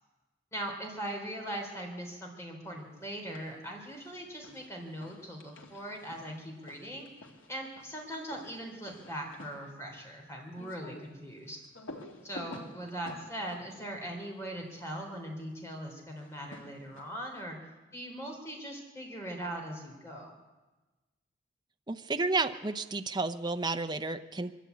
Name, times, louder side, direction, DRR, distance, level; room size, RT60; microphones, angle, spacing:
voice 1, 0.5-7.1 7.5-11.6 12.2-17.6 17.9-20.4, right 1 dB, 15° left, 1 dB, 3.9 m, -40 dB
sound 1, 3.0-3.6 3.9-14.9 16.1-17.3, left 1 dB, 85° left, 2.5 m, -51 dB
voice 2, 21.9-24.5, right 3 dB, 20° right, 8 dB, 0.7 m, -31 dB
23.0 x 13.5 x 8.5 m, 1.2 s
head